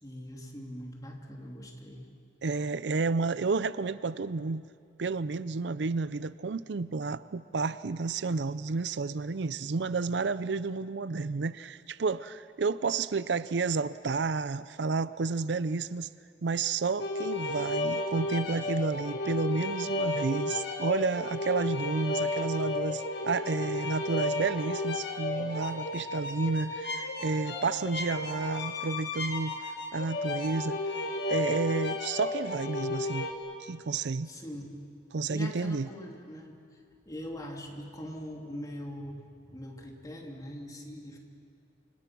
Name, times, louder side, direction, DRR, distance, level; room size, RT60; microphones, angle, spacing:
voice 1, 0.0-2.1 34.2-34.8 35.3-41.2, equal, 20° left, 1 dB, 3.0 m, -42 dB
voice 2, 2.4-4.6 5.0-16.1 16.4-29.5 29.9-30.8 31.3-33.3 33.6-34.3 35.1-35.9, right 4 dB, 70° right, 16 dB, 0.6 m, -31 dB
sound 1, 17.0-33.3, left 2 dB, 70° left, 2.3 m, -33 dB
29.0 x 25.5 x 6.2 m, 2.2 s
head